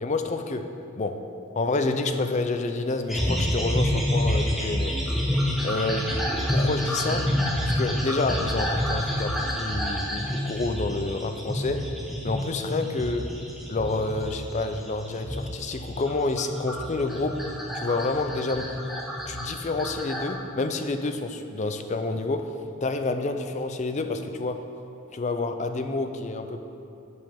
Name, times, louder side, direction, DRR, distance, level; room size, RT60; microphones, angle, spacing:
voice 1, 0.0-1.3 1.6-5.0 5.6-6.1 6.5-7.3 7.7-11.9 12.2-13.3 13.7-17.4 17.7-18.7 19.3-22.5 22.8-24.6 25.1-26.6, left 3 dB, 30° left, 7 dB, 0.4 m, -28 dB
sound 1, 3.1-20.3, equal, ahead, 0.9 m, -28 dB
14.5 x 5.5 x 3.5 m, 2.7 s
head